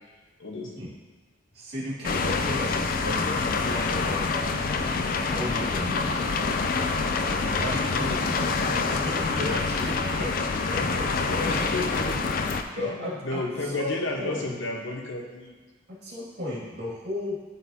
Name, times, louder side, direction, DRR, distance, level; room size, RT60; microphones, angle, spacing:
voice 1, 0.4-0.7 11.5-12.3 12.7-15.5, left 2 dB, 80° left, 0 dB, 1.2 m, -32 dB
voice 2, 1.5-4.5 5.3-6.3 7.1-11.5 12.8-14.5 16.0-17.4, left 1 dB, 55° right, -6 dB, 2.2 m, -34 dB
sound 1, 2.0-12.6, left 4 dB, 45° left, 0.4 m, -26 dB
sound 2, 5.1-10.3, right 1 dB, 25° right, 1.3 m, -45 dB
12.0 x 4.1 x 2.8 m, 1.4 s
head